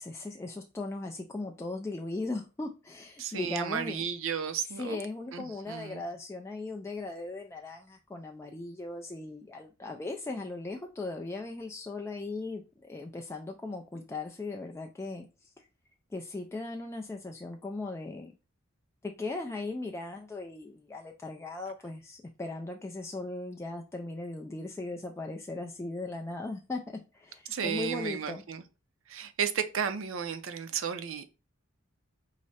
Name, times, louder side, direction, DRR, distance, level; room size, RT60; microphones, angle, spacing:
voice 1, 0.0-4.0 4.7-15.7 16.1-18.3 19.0-28.4, left 2 dB, 15° left, 0.3 m, -38 dB
voice 2, 3.2-5.0 5.3-6.0 27.5-28.6 29.1-31.3, right 7 dB, 70° right, 0.5 m, -33 dB
4.8 x 2.1 x 4.1 m
head